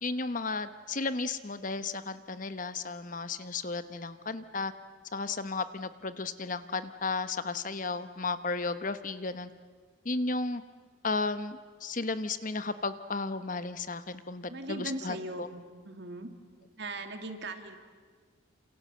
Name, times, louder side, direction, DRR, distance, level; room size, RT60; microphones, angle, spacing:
voice 1, 0.0-4.7 5.1-9.5 10.0-10.6 11.0-15.5, left 3 dB, 40° left, 11 dB, 1.0 m, -34 dB
voice 2, 14.5-16.3 16.8-17.8, right 2 dB, 55° right, 6 dB, 2.5 m, -39 dB
28.0 x 27.5 x 7.7 m, 1.5 s
head